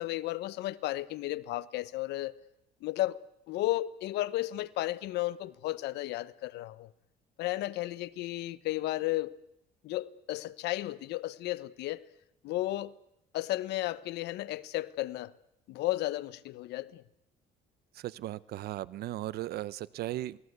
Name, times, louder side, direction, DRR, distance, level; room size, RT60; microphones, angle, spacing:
voice 1, 0.0-2.3 2.8-3.2 3.5-6.9 7.4-9.4 9.8-12.0 12.4-12.9 13.3-15.3 15.7-17.0, left 16 dB, 80° left, 1.0 m, -33 dB
voice 2, 17.9-20.4, right 14 dB, 70° right, 0.9 m, -37 dB
27.5 x 19.5 x 8.1 m
cardioid pair, 110°, 17 cm